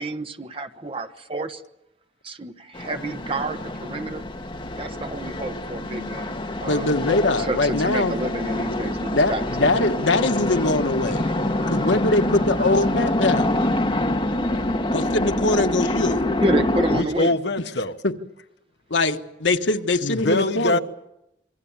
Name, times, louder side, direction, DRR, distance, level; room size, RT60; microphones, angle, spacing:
voice 1, 0.0-1.6 2.2-4.2 4.8-7.0 7.4-9.9 11.2-12.0 12.6-12.7 16.4-17.4, right 2 dB, 30° right, 1.2 m, -30 dB
sound 1, 2.7-17.0, left 1 dB, 30° left, 1.9 m, -26 dB
voice 2, 6.7-8.2 9.2-11.2 11.7-13.5 14.9-16.2 18.0-18.1 18.9-20.8, left 2 dB, 80° left, 1.5 m, -22 dB
voice 3, 16.9-18.0 20.0-20.8, left 2 dB, 65° left, 1.3 m, -23 dB
26.5 x 23.5 x 7.4 m
head